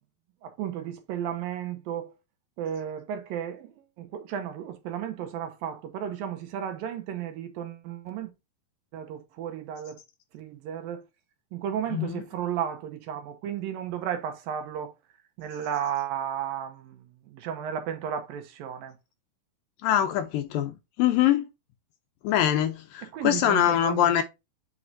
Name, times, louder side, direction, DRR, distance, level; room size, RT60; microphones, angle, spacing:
voice 1, 0.4-2.1 2.6-8.3 8.9-10.0 10.3-11.0 11.5-14.9 15.4-18.9 23.1-24.2, right 9 dB, 70° right, 2.7 m, -34 dB
voice 2, 11.9-12.2 19.8-21.5 22.2-24.2, left 11 dB, 75° left, 2.2 m, -24 dB
8.6 x 4.8 x 2.7 m
omnidirectional pair, 4.5 m